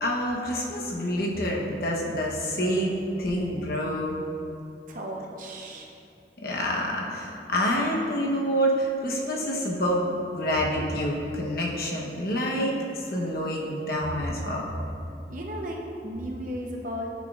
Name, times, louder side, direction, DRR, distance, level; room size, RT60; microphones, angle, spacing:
voice 1, 0.0-4.2 6.4-10.1 10.3-14.7, equal, 60° left, -2 dB, 1.0 m, -27 dB
voice 2, 4.9-5.9 15.3-15.8 16.0-17.1, equal, 50° right, 0 dB, 0.8 m, -35 dB
9.3 x 6.2 x 2.4 m, 2.6 s
head